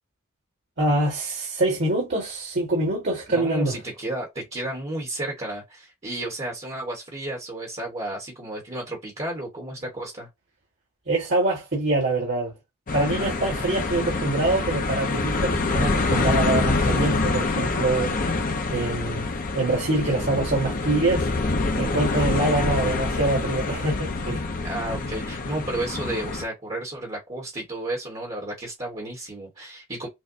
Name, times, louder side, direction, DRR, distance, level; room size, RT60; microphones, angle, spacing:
voice 1, 0.8-3.8 11.1-12.5 12.9-18.1 18.7-19.3 19.5-21.3 21.8-24.5, right 2 dB, 50° right, 1.7 m, -25 dB
voice 2, 3.3-10.3 24.6-30.1, right 1 dB, 30° right, 1.2 m, -32 dB
sound 1, 12.9-26.4, left 3 dB, 40° left, 0.6 m, -26 dB
6.3 x 2.2 x 2.6 m
head